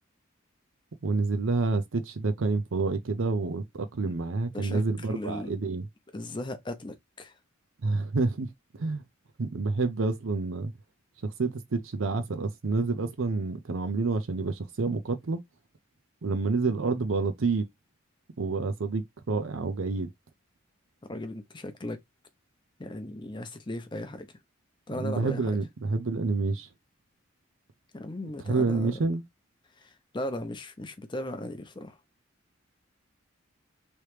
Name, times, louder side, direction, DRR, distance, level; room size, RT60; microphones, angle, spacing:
voice 1, 1.0-5.8 7.8-8.5 8.8-9.0 9.4-10.7 11.2-15.4 16.2-17.7 18.4-20.1 24.9-26.7 28.2-29.2, right 3 dB, 70° right, 0.6 m, -28 dB
voice 2, 4.5-5.7 6.1-7.3 21.1-22.0 22.8-24.3 24.9-25.5 27.9-28.9 29.8-32.0, left 1 dB, 25° left, 0.6 m, -37 dB
3.1 x 2.9 x 3.2 m
head